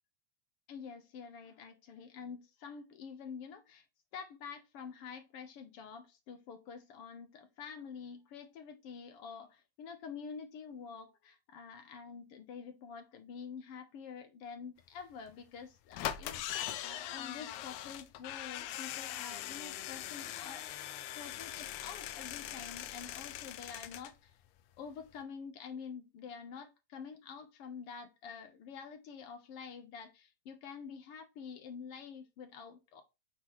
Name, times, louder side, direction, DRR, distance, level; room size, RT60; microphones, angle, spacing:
voice 1, 0.7-3.8 4.1-20.7 21.0-24.4 24.8-33.0, left 6 dB, 65° left, 1.5 m, -47 dB
sound 1, 15.3-15.4 15.9-24.1 24.5-24.6 24.8-24.9, left 12 dB, 80° left, 1.9 m, -41 dB
7.6 x 4.6 x 3.1 m
omnidirectional pair, 3.4 m